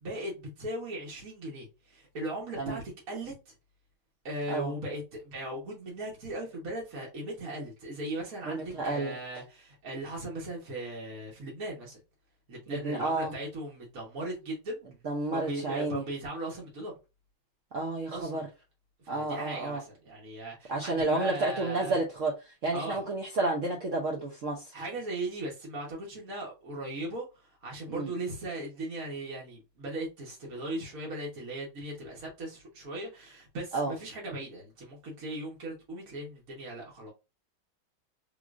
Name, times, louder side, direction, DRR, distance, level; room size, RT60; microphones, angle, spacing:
voice 1, 0.0-3.5 4.2-12.0 12.5-14.8 15.3-16.9 18.1-18.5 19.0-22.0 22.7-23.0 24.7-37.1, right 1 dB, 50° right, 1.4 m, -38 dB
voice 2, 8.4-9.2 12.7-13.3 15.0-16.0 17.7-18.5 19.1-19.8 20.7-24.8 27.9-28.1 33.7-33.9, right 2 dB, 85° right, 0.6 m, -31 dB
3.7 x 3.1 x 2.4 m
omnidirectional pair, 2.2 m